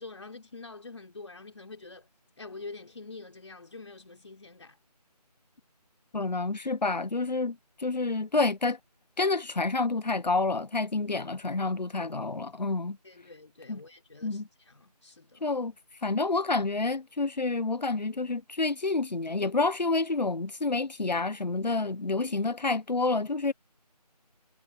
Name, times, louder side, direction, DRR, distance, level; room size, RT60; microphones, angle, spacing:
voice 1, 0.0-2.1 2.4-4.8 13.0-15.5, left 3 dB, 45° left, 3.4 m, -46 dB
voice 2, 6.1-8.8 9.2-13.0 13.7-13.8 14.2-14.5 15.4-15.7 16.0-23.5, left 3 dB, 90° left, 1.1 m, -28 dB
figure-of-eight pair, 170°, 21 cm